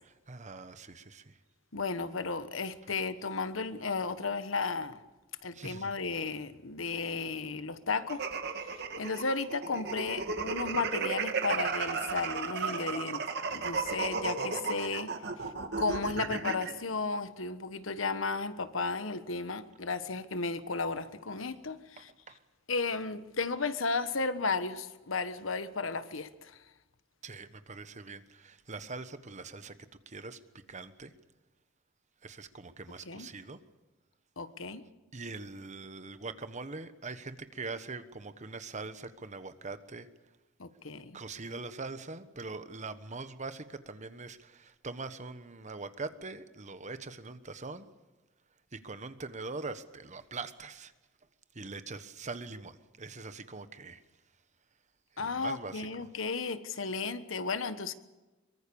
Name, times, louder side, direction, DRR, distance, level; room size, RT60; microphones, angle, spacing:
voice 1, 0.3-1.4 5.5-5.9 22.0-22.4 27.2-29.7 30.1-30.4 30.7-31.1 32.2-33.6 35.1-40.1 41.1-47.9 48.7-50.9 51.5-54.0 55.2-56.1, right 3 dB, 35° right, 1.2 m, -42 dB
voice 2, 1.7-5.0 5.4-8.2 8.6-13.2 13.5-15.1 15.8-22.1 22.7-26.6 33.0-33.3 34.4-34.8 40.6-41.2 55.2-57.9, left 4 dB, 80° left, 1.3 m, -34 dB
sound 1, 8.1-16.7, right 5 dB, 55° right, 2.1 m, -34 dB
23.5 x 23.5 x 7.1 m
head